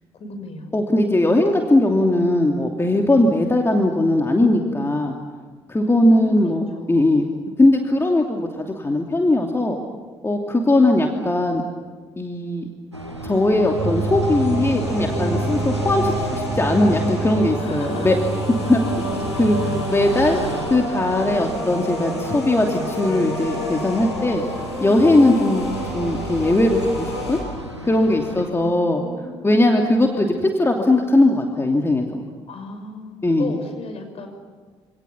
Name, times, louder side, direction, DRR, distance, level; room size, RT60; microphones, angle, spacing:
voice 1, 0.2-0.9 5.8-7.0 10.6-11.3 17.6-18.2 20.2-20.4 25.1-25.6 28.3-29.5 32.5-34.3, left 2 dB, 45° left, 5 dB, 6.2 m, -35 dB
voice 2, 0.7-5.1 5.7-6.6 6.9-7.2 7.6-9.8 10.2-11.6 12.2-12.7 13.2-18.2 18.7-18.8 19.3-20.4 20.7-24.4 24.8-25.6 25.9-27.4 27.8-29.0 29.4-32.2 33.2-33.5, left 1 dB, 15° left, 2 dB, 2.8 m, -19 dB
sound 1, 12.9-28.4, equal, 90° right, 1.7 m, -35 dB
sound 2, 13.7-27.4, equal, 85° left, 6.8 m, -29 dB
sound 3, 13.8-19.8, right 3 dB, 45° right, 4.7 m, -28 dB
27.5 x 27.0 x 7.2 m, 1.5 s
figure-of-eight pair, 45°, 14 cm